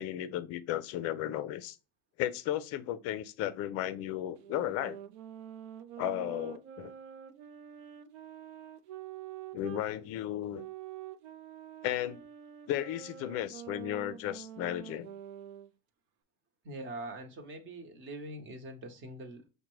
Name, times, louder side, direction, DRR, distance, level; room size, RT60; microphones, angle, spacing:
voice 1, 0.0-1.8 2.2-5.0 6.0-6.9 9.5-10.6 11.8-12.2 12.7-15.1, left 12 dB, 40° left, 0.5 m, -34 dB
sound 1, 4.4-9.9 10.5-15.7, right 10 dB, 65° right, 0.6 m, -46 dB
voice 2, 16.6-19.4, right 1 dB, 30° right, 1.0 m, -43 dB
5.7 x 2.2 x 3.0 m
supercardioid pair, 130°, 37 cm